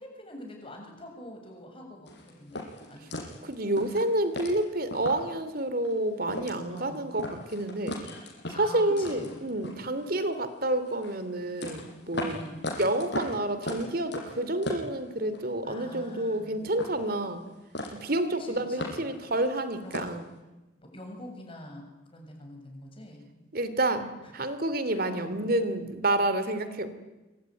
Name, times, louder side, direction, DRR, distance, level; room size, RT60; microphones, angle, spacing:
voice 1, 0.0-3.2 6.7-7.1 8.5-9.4 12.2-12.7 15.6-16.5 18.4-19.0 19.8-20.1 20.8-23.3 24.9-25.3, left 1 dB, 25° left, 2 dB, 7.1 m, -45 dB
sound 1, 2.1-5.4 5.8-5.9 6.2-6.9 7.2-10.4 10.8-15.6 15.8-16.4 16.7-17.5 17.7-18.2 18.5-20.2, left 1 dB, 55° left, 6.7 m, -38 dB
voice 2, 3.4-8.0 8.6-12.4 12.8-17.4 17.9-20.3 23.5-26.9, right 1 dB, 45° right, 12 dB, 2.7 m, -29 dB
25.5 x 24.5 x 9.6 m, 1.1 s
head